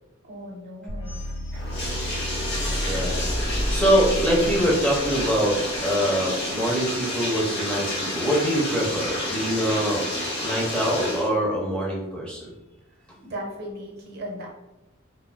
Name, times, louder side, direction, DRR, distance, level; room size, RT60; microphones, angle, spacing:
voice 1, 0.2-1.2 13.2-14.5, equal, 50° right, -1 dB, 0.7 m, -36 dB
sound 1, 0.9-5.8, equal, 80° left, 1.1 m, -30 dB
Bathtub (filling or washing), 1.5-11.3, left 1 dB, 50° left, 0.8 m, -30 dB
voice 2, 2.8-3.2 3.5-5.6 5.8-10.0 10.4-12.5, equal, 5° left, -4 dB, 0.5 m, -24 dB
2.3 x 2.0 x 3.8 m, 1.0 s
head